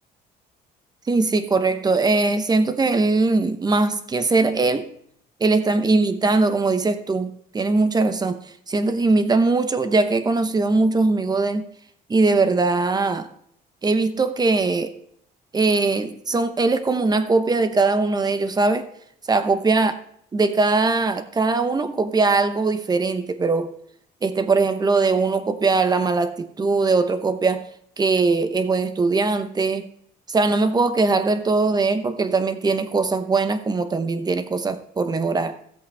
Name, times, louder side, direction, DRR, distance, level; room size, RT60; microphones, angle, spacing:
voice 1, 1.1-4.9 5.4-11.6 12.1-13.3 13.8-14.9 15.5-18.9 19.3-19.9 20.3-23.7 24.2-27.7 28.0-29.9 30.3-35.6, right 3 dB, 25° right, 0.9 m, -21 dB
14.0 x 7.9 x 3.4 m
cardioid pair, 110°, 17 cm